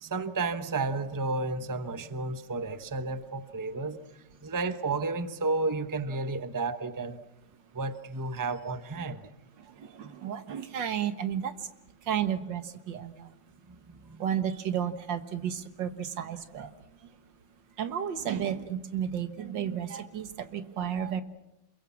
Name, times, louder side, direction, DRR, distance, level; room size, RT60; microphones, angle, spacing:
voice 1, 0.0-4.0 4.4-7.2 7.7-9.2 13.7-14.2, right 3 dB, 15° right, 11 dB, 0.7 m, -32 dB
voice 2, 9.6-11.5 12.1-13.3 14.2-16.7 17.8-21.2, right 9 dB, 90° right, 11 dB, 2.1 m, -32 dB
28.0 x 22.5 x 7.2 m, 0.88 s
omnidirectional pair, 1.9 m